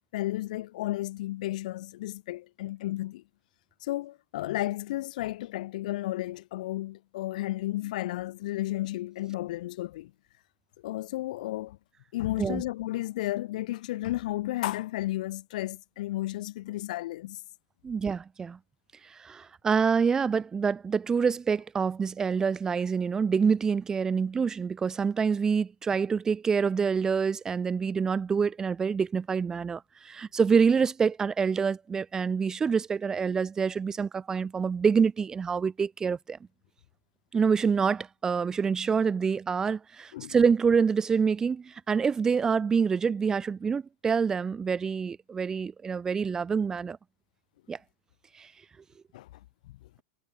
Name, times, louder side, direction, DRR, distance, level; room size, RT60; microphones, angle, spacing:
voice 1, 0.1-3.2 3.8-10.1 10.8-11.8 12.1-17.4 40.1-40.4 49.1-49.3, left 16 dB, 70° left, 0.9 m, -33 dB
voice 2, 17.8-18.6 19.2-36.4 37.3-47.0 47.7-47.8 48.4-48.5, right 6 dB, 15° right, 0.4 m, -26 dB
supercardioid pair, 140°, 4 cm